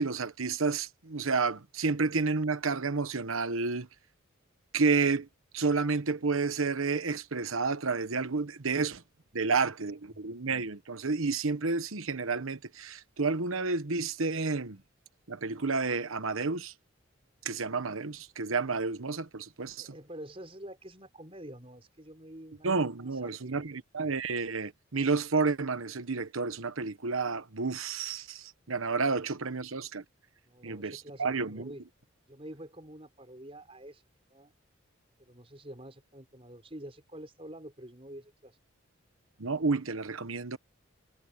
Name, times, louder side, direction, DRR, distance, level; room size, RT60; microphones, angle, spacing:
voice 1, 0.0-3.9 4.7-5.3 5.5-9.0 9.3-14.8 15.3-16.7 17.4-19.9 22.6-30.0 30.6-31.7 39.4-40.6, right 4 dB, 90° right, 1.2 m, -30 dB
voice 2, 19.8-22.7 23.0-23.6 30.5-31.8 32.3-34.0 34.3-34.5 35.3-38.6, right 1 dB, 30° right, 5.5 m, -47 dB
head